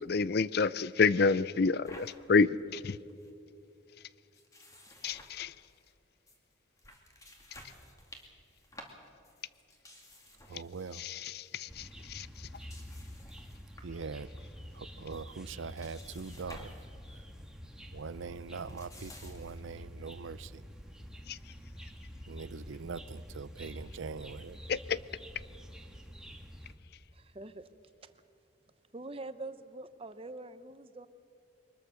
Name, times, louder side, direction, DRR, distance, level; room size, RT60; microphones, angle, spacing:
voice 1, 0.0-3.0 5.0-5.5 11.0-12.3 21.3-21.4 24.7-25.0, left 4 dB, 55° left, 0.4 m, -29 dB
sound 1, 1.8-2.1 2.6-2.7 2.9-3.3 4.3-5.9 6.3-6.4 6.8-11.0 11.3-11.6 12.3-14.0 14.4-14.8 15.1-16.9 17.2-17.4 18.3-19.7, left 1 dB, 15° left, 2.3 m, -54 dB
voice 2, 10.5-11.1 13.8-14.3 14.7-16.7 17.9-20.6 22.3-24.6, right 4 dB, 85° right, 0.6 m, -42 dB
sound 2, 11.7-26.8, equal, 5° right, 1.4 m, -48 dB
voice 3, 27.1-27.7 28.9-31.1, right 2 dB, 30° right, 0.8 m, -44 dB
23.0 x 20.5 x 6.4 m
head